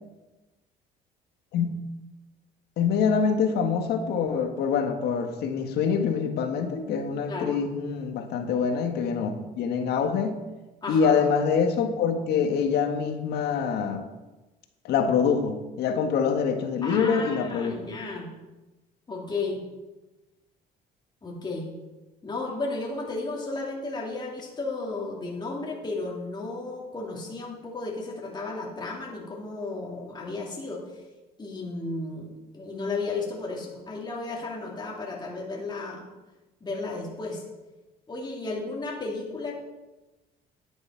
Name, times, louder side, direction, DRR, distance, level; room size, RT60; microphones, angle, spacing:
voice 1, 2.8-10.4 10.9-14.1 14.8-17.8, left 6 dB, 75° left, 6 dB, 1.5 m, -25 dB
voice 2, 7.3-7.6 10.8-11.2 16.8-18.3 19.1-19.6 21.2-21.7 22.2-30.8 31.4-36.0 36.6-37.4 38.1-39.6, left 3 dB, 25° left, -3 dB, 2.7 m, -33 dB
10.5 x 7.9 x 5.8 m, 1.1 s
cardioid pair, 110°, 17 cm